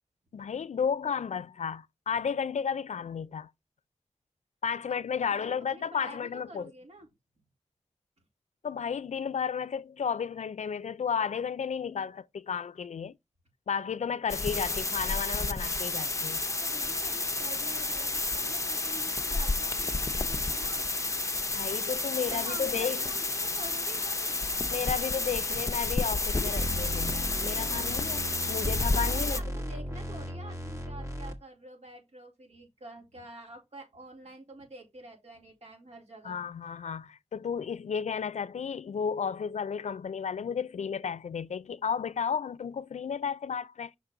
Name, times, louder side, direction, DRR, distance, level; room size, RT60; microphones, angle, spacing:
voice 1, 0.3-3.5 4.6-6.7 8.6-13.1 13.7-16.4 21.5-23.0 24.7-29.4 36.2-43.9, left 7 dB, 80° left, 0.4 m, -33 dB
voice 2, 5.3-7.1 16.6-20.9 22.3-24.4 29.1-36.4, right 2 dB, 65° right, 3.7 m, -48 dB
sound 1, 14.3-29.4, left 3 dB, 25° left, 0.7 m, -31 dB
sound 2, 26.5-31.3, equal, 25° right, 1.4 m, -35 dB
6.1 x 5.9 x 3.9 m
wide cardioid pair, 100°, 12 cm